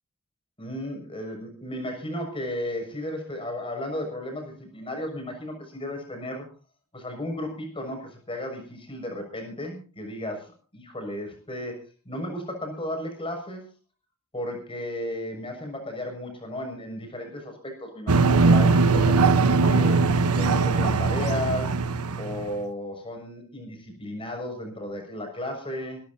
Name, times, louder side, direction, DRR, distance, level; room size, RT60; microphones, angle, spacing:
voice 1, 0.6-6.5 6.9-11.8 12.0-13.7 14.3-20.0 20.3-21.8 22.2-26.0, left 1 dB, 25° left, 3 dB, 6.4 m, -34 dB
sound 1, 18.1-22.5, right 4 dB, 90° right, 1.1 m, -20 dB
25.5 x 13.5 x 2.8 m, 0.37 s
head